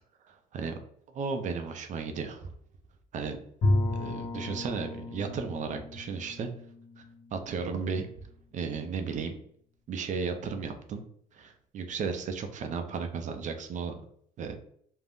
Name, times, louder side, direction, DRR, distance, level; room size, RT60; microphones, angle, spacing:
voice 1, 1.1-2.4 3.1-3.4 3.9-6.5 7.0-7.1 7.3-8.1 8.5-9.3 9.9-11.0 11.3-13.9 14.4-14.5, right 5 dB, 50° right, 6 dB, 0.4 m, -34 dB
Bowed string instrument, 3.6-8.4, left 2 dB, 45° left, 1.0 m, -33 dB
2.5 x 2.0 x 3.5 m, 0.63 s
cardioid pair, 110°, 17 cm